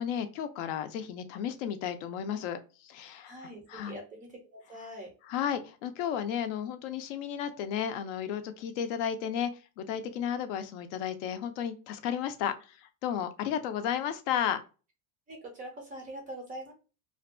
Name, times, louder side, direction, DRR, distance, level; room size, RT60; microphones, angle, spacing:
voice 1, 0.0-4.0 5.3-9.5 9.8-14.6, left 9 dB, 60° left, 9 dB, 0.5 m, -33 dB
voice 2, 3.3-5.1 15.3-16.7, right 1 dB, 20° right, 2 dB, 0.4 m, -43 dB
2.5 x 2.2 x 2.4 m, 0.33 s
supercardioid pair, 150°, 44 cm